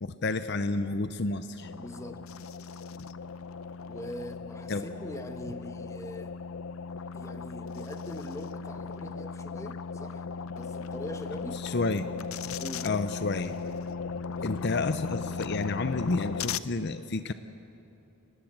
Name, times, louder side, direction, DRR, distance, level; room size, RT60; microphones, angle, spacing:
voice 1, 0.0-1.7 4.7-4.8 11.6-12.1 12.8-13.6 14.4-17.3, left 3 dB, 55° left, 11 dB, 0.7 m, -30 dB
sound 1, 1.6-16.6, left 5 dB, 90° left, 0.6 m, -37 dB
voice 2, 1.7-2.3 3.9-6.4 7.1-10.3 10.5-11.6 12.6-12.9 14.4-14.6, left 1 dB, 15° left, 7 dB, 1.2 m, -42 dB
24.5 x 19.5 x 7.5 m, 2.9 s
head